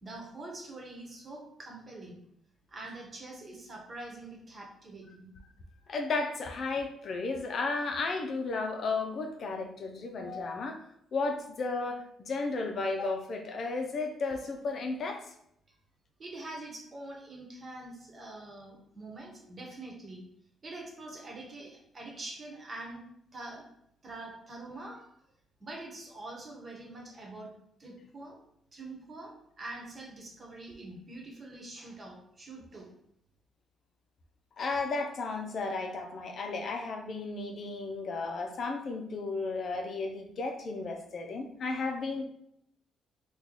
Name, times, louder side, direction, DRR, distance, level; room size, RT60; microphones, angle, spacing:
voice 1, 0.0-2.2 2.7-5.3 16.2-20.3 20.6-23.0 23.3-23.6 24.0-25.1 25.6-27.5 27.8-28.4 28.7-32.9, right 2 dB, 35° right, -1 dB, 1.1 m, -44 dB
voice 2, 5.9-10.9 11.1-15.3 34.6-42.2, left 3 dB, 55° left, 4 dB, 0.5 m, -34 dB
3.1 x 2.2 x 3.9 m, 0.74 s
cardioid pair, 90°, 0 cm